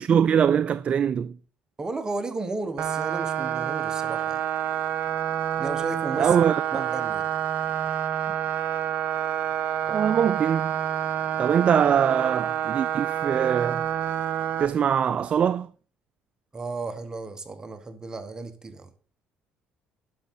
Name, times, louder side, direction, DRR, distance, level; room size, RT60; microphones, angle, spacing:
voice 1, 0.0-1.4 6.2-6.6 9.9-10.7 11.4-13.9 14.6-15.7, right 8 dB, 45° right, 0.3 m, -22 dB
voice 2, 1.8-4.4 5.6-7.3 16.5-18.9, right 3 dB, 25° right, 1.1 m, -34 dB
sound 1, 2.8-14.7, right 10 dB, 60° right, 0.8 m, -28 dB
11.5 x 6.1 x 4.2 m
supercardioid pair, 80°, 3 cm